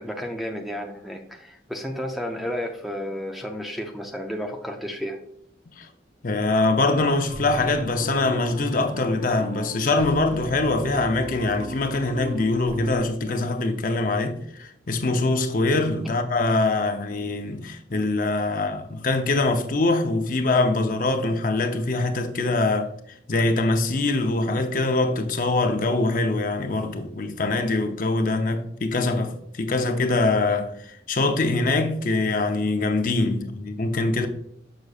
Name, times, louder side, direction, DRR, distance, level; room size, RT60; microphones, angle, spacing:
voice 1, 0.0-5.2, equal, ahead, 0.5 m, -32 dB
voice 2, 6.2-22.9 23.3-34.3, left 2 dB, 50° left, 0.7 m, -23 dB
sound 1, 6.9-13.0, right 1 dB, 40° right, 0.7 m, -37 dB
6.5 x 6.4 x 2.4 m
head